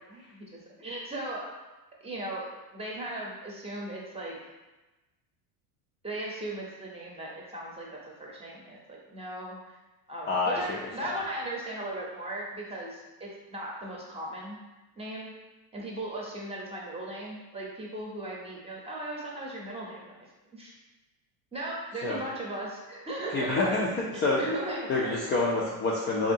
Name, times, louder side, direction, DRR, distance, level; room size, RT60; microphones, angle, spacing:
voice 1, 0.1-1.5 2.0-4.4 6.0-9.8 10.1-14.6 15.0-15.3 15.7-20.1 20.5-20.7 21.5-23.8 24.1-25.1, right 1 dB, 15° right, -3 dB, 0.7 m, -37 dB
voice 2, 10.3-11.2 22.0-22.2 23.3-24.5 24.9-26.3, left 3 dB, 25° left, -4 dB, 0.4 m, -28 dB
3.8 x 2.7 x 2.6 m, 1.1 s
supercardioid pair, 115°, 43 cm